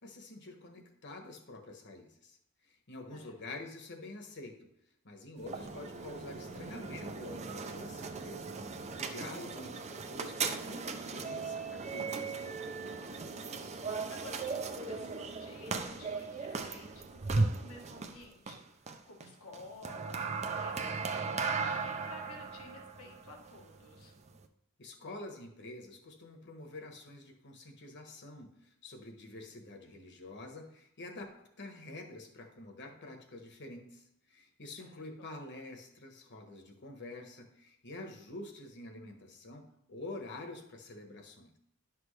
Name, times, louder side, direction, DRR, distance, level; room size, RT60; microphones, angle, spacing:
voice 1, 0.0-2.4 2.6-4.7 5.0-8.4 9.0-12.6 24.8-31.3 31.6-41.6, left 2 dB, 55° left, 4 dB, 1.3 m, -47 dB
voice 2, 3.1-3.6 13.2-13.8 14.1-18.6 19.1-24.1 34.8-35.3, left 2 dB, 85° left, 2 dB, 1.4 m, -52 dB
sound 1, 5.4-24.5, right 4 dB, 30° right, 0.5 m, -37 dB
10.5 x 6.1 x 3.3 m, 0.74 s
head